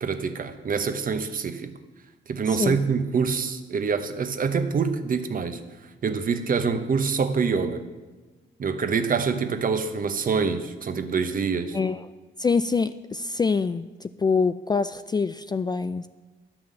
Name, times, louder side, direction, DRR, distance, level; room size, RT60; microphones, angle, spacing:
voice 1, 0.0-1.7 2.3-5.6 6.0-7.8 8.6-11.8, right 5 dB, 45° right, 9 dB, 1.0 m, -25 dB
voice 2, 11.7-12.1 12.4-16.1, left 4 dB, 20° left, 12 dB, 0.3 m, -25 dB
11.0 x 6.0 x 7.5 m, 1.2 s
cardioid pair, 90°, 20 cm